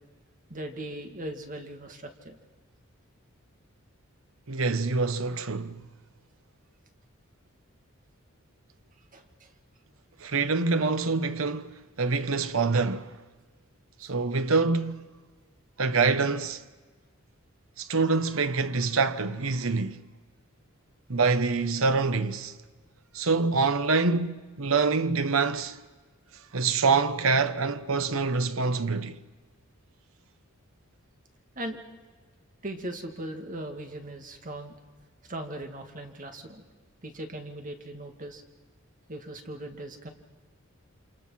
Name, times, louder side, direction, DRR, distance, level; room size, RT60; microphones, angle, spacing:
voice 1, 0.5-2.4 9.1-9.5 31.6-31.8 32.6-34.7 35.2-36.6 37.0-38.4 39.1-40.1, right 1 dB, 40° right, 2.3 m, -39 dB
voice 2, 4.5-5.8 10.2-13.2 14.0-15.1 15.8-16.6 17.8-20.0 21.1-22.5 23.1-25.8 26.5-29.2, right 4 dB, 70° right, 1.1 m, -25 dB
28.5 x 26.5 x 5.8 m
head